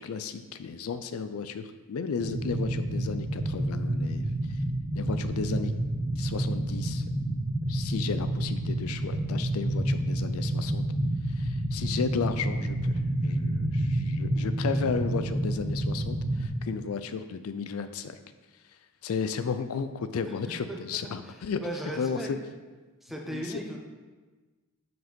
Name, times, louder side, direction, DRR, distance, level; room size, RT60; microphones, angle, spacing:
voice 1, 0.0-4.3 5.0-5.7 6.2-7.0 7.7-10.8 11.4-18.2 19.0-21.6 22.0-22.2 23.3-23.4, left 5 dB, 80° left, 11 dB, 0.4 m, -34 dB
sound 1, 2.2-16.5, right 1 dB, 35° right, 1.1 m, -29 dB
voice 2, 20.7-22.3 23.0-23.8, equal, ahead, 0 dB, 0.9 m, -37 dB
6.2 x 4.9 x 5.2 m, 1.3 s
head